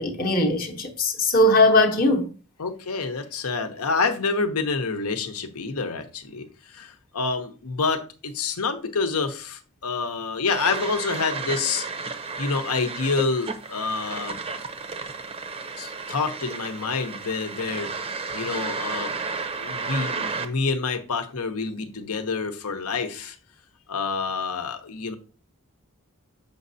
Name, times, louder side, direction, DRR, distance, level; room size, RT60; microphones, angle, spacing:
voice 1, 0.0-2.3, left 1 dB, 40° left, 0.8 m, -20 dB
voice 2, 2.6-11.9 12.4-14.4 15.8-17.9 18.3-19.1 19.6-23.4 23.9-25.2, left 4 dB, 90° left, 0.9 m, -27 dB
sound 1, 10.5-20.5, right 4 dB, 25° right, 0.5 m, -33 dB
7.0 x 5.3 x 2.7 m
head